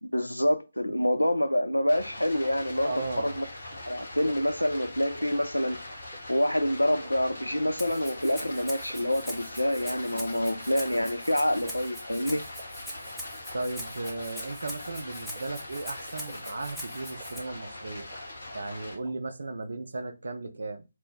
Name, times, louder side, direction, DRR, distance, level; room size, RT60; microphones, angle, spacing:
voice 1, 0.0-2.9 3.2-3.5 3.8-5.8 6.3-12.4, equal, 85° left, 0.4 m, -27 dB
Stream, 1.9-18.9, left 1 dB, 60° left, 1.0 m, -42 dB
sound 1, 2.4-2.5 3.3-3.4 4.3-4.4 5.2-5.3 6.1-6.2 7.0-7.1 8.0-8.1 8.9-9.0 9.8-9.9 10.7-10.8 11.7-11.8 12.6-12.7 13.5-13.6 14.4-14.5 15.3-15.4 16.3-16.4 17.2-17.3 18.1-18.2 19.0-19.1, right 5 dB, 20° right, 1.0 m, -49 dB
voice 2, 2.8-3.4 13.5-18.1 18.5-20.9, right 2 dB, 60° right, 0.5 m, -36 dB
Rattle (instrument), 7.8-17.4, equal, ahead, 0.4 m, -42 dB
2.5 x 2.1 x 3.5 m
figure-of-eight pair, 145°, 0 cm